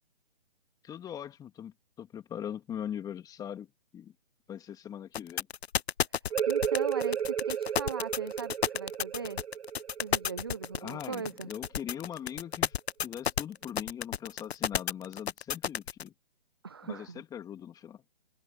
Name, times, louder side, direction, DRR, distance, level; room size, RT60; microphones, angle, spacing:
voice 1, 0.8-3.7 3.9-4.1 4.5-5.5 10.8-12.7 13.0-16.1 16.8-18.1, left 9 dB, 10° left, 2.7 m, -41 dB
sound 1, 5.1-16.0, left 8 dB, 75° left, 0.6 m, -31 dB
voice 2, 6.1-9.4 10.0-11.5 16.6-17.2, right 5 dB, 25° right, 0.3 m, -39 dB
sound 2, 6.3-11.7, right 8 dB, 75° right, 0.6 m, -33 dB
figure-of-eight pair, 145°, 32 cm